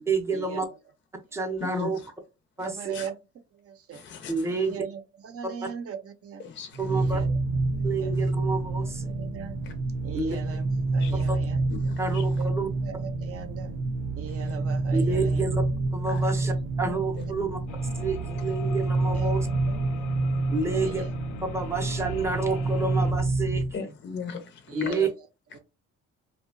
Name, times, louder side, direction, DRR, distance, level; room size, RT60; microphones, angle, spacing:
voice 1, 0.1-0.7 1.3-2.0 2.6-2.9 4.3-4.8 6.8-7.2 7.8-9.1 10.1-10.4 11.3-11.4 12.0-12.7 14.9-15.6 15.9-17.6 18.0-19.5 20.5-21.0 21.5-23.6 24.7-25.1, right 3 dB, 10° right, 0.6 m, -29 dB
voice 2, 1.6-1.9 2.9-3.1 3.9-4.5 6.4-6.8 11.0-11.3 11.8-12.3 14.3-14.5 16.1-16.2 23.7-24.8, left 5 dB, 40° left, 0.6 m, -38 dB
voice 3, 2.6-3.2 3.5-4.0 4.5-6.4 6.9-7.3 8.0-8.1 8.8-9.6 10.0-10.7 10.9-11.6 12.4-12.5 12.8-13.7 14.2-15.4 16.9-17.0 19.1-20.2 20.7-21.1 24.7-25.1 25.5-25.6, right 7 dB, 50° right, 0.6 m, -39 dB
sound 1, 6.7-23.8, right 2 dB, 85° right, 0.7 m, -28 dB
sound 2, 17.7-23.1, left 6 dB, 85° left, 0.5 m, -43 dB
2.7 x 2.1 x 2.6 m
cardioid pair, 90°, 30 cm